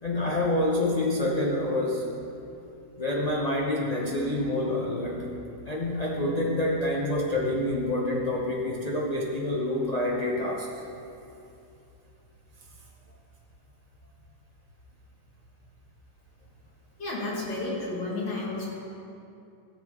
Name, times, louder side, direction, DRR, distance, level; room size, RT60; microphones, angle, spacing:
voice 1, 0.0-2.1 3.0-5.3 5.7-10.7, left 1 dB, 40° left, -3 dB, 0.5 m, -27 dB
voice 2, 17.0-18.7, left 2 dB, 90° left, -4 dB, 2.6 m, -31 dB
15.0 x 7.7 x 3.7 m, 2.7 s
omnidirectional pair, 2.0 m